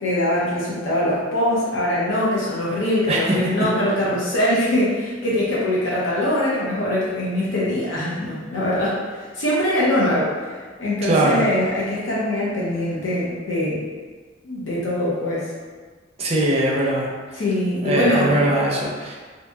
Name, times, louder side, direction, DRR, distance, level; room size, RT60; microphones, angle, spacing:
voice 1, 0.0-13.8 14.4-15.5 17.3-18.5, left 1 dB, 80° left, -7 dB, 0.6 m, -22 dB
voice 2, 11.0-11.4 16.2-17.1 17.8-19.1, right 1 dB, 30° right, -3 dB, 0.5 m, -20 dB
2.7 x 2.6 x 2.3 m, 1.4 s
head